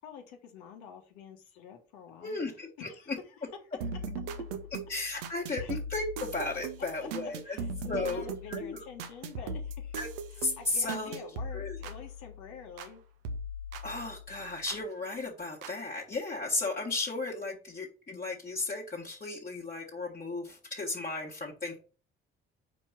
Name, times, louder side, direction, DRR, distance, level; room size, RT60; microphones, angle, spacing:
voice 1, 0.0-3.1 3.8-4.1 5.6-5.7 7.0-7.1 7.5-10.0 10.6-13.0, left 6 dB, 65° left, 3 dB, 1.3 m, -47 dB
voice 2, 2.2-2.9 4.9-7.6 7.9-8.8 9.9-10.1 10.4-11.2 11.5-11.8 13.8-21.8, left 3 dB, 30° left, -3 dB, 1.7 m, -35 dB
sound 1, 3.8-13.0 13.2-14.8 15.6-15.7, right 2 dB, 75° right, 0.8 m, -39 dB
5.2 x 4.5 x 5.7 m, 0.37 s
figure-of-eight pair, 50°, 30 cm